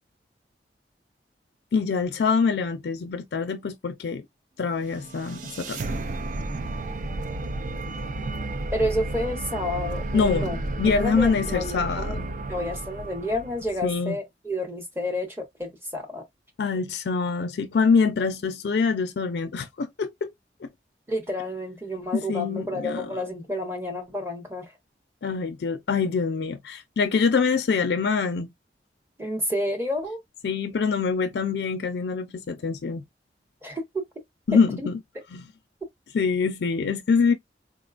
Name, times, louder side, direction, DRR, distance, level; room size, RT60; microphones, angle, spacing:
voice 1, 1.7-4.2 4.6-6.0 10.1-10.5 10.8-12.3 13.8-14.2 16.6-20.3 20.6-20.7 22.1-23.2 25.2-28.5 30.4-33.0 34.5-35.0 35.3-35.4 36.1-37.3, left 5 dB, 70° left, 0.4 m, -25 dB
sound 1, 4.8-13.9, right 2 dB, 45° right, 0.4 m, -32 dB
voice 2, 8.7-10.6 10.9-12.2 12.5-16.2 21.1-24.7 29.2-30.2 33.6-34.0 34.5-34.9, left 1 dB, 15° right, 0.9 m, -30 dB
3.8 x 2.2 x 2.4 m
head